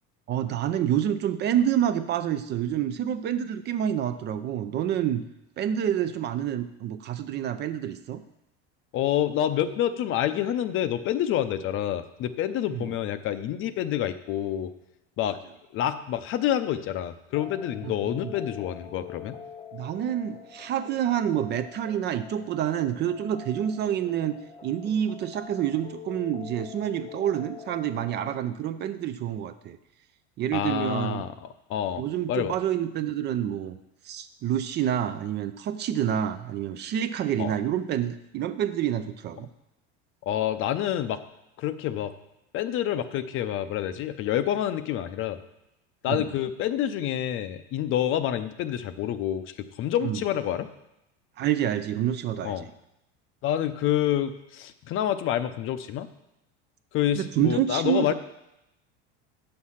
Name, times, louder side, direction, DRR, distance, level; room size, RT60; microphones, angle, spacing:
voice 1, 0.3-5.2 5.6-8.2 12.7-12.9 17.8-18.3 19.7-24.4 24.6-29.8 30.4-31.2 32.0-33.8 34.0-39.5 46.1-46.3 50.0-50.2 51.4-52.6 57.1-58.1, right 10 dB, 35° right, 11 dB, 0.4 m, -28 dB
voice 2, 8.9-14.7 15.2-15.4 15.7-19.4 30.5-32.0 32.3-32.6 37.4-37.5 40.2-41.2 41.6-42.1 42.5-45.4 46.0-50.7 52.4-52.7 53.4-56.1 56.9-58.1, left 11 dB, 40° left, 11 dB, 0.6 m, -28 dB
sound 1, 17.3-28.4, left 7 dB, 20° left, 0.8 m, -45 dB
8.4 x 6.5 x 5.7 m, 0.88 s
supercardioid pair, 140°, 31 cm